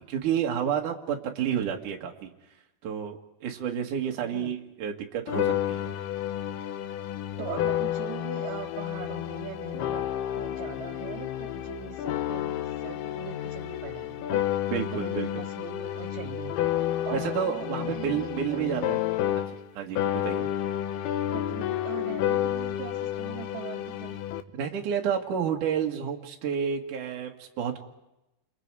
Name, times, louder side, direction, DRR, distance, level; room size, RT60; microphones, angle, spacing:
voice 1, 0.0-2.3 2.8-5.9 14.7-15.3 17.1-19.0 19.4-19.5 19.7-20.5 24.5-27.8, right 8 dB, 55° right, 1 dB, 3.1 m, -30 dB
voice 2, 4.2-4.5 7.4-10.1 10.4-14.5 14.9-16.6 17.1-18.9 21.3-24.2, right 11 dB, 90° right, 9 dB, 3.2 m, -41 dB
sound 1, 5.3-19.7 20.0-24.4, left 12 dB, 75° left, 2.8 m, -30 dB
29.0 x 28.5 x 4.9 m, 0.95 s
omnidirectional pair, 5.0 m